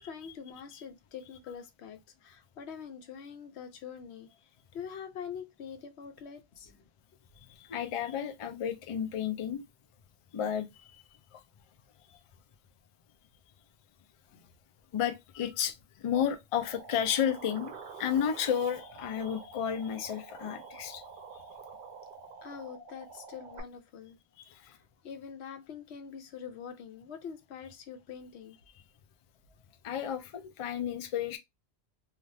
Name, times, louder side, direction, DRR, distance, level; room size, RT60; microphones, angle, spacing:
voice 1, 0.0-4.3 4.7-6.9 14.3-14.5 22.4-24.2 24.5-28.6, left 7 dB, 85° left, 0.9 m, -45 dB
voice 2, 7.7-9.6 10.3-10.7 11.3-11.4 14.9-21.0 29.8-31.4, left 9 dB, 55° left, 0.3 m, -32 dB
sound 1, 16.6-23.6, right 5 dB, 60° right, 0.7 m, -48 dB
2.6 x 2.4 x 3.2 m
omnidirectional pair, 1.1 m